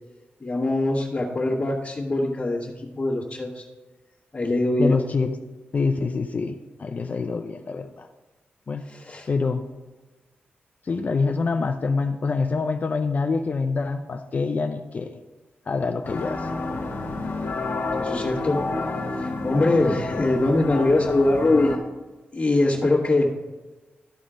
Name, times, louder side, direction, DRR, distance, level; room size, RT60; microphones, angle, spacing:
voice 1, 0.4-3.6 4.3-5.0 8.8-9.3 18.0-18.7 19.1-21.7 22.3-23.3, left 2 dB, 25° left, -8 dB, 1.4 m, -22 dB
voice 2, 4.8-5.3 5.7-8.1 8.7-8.9 9.3-9.6 10.8-15.2 15.7-16.5, left 4 dB, 40° left, 6 dB, 0.4 m, -25 dB
sound 1, 16.0-21.8, left 3 dB, 65° left, 1.2 m, -30 dB
12.5 x 4.2 x 5.0 m, 1.2 s
wide cardioid pair, 115°, 4 cm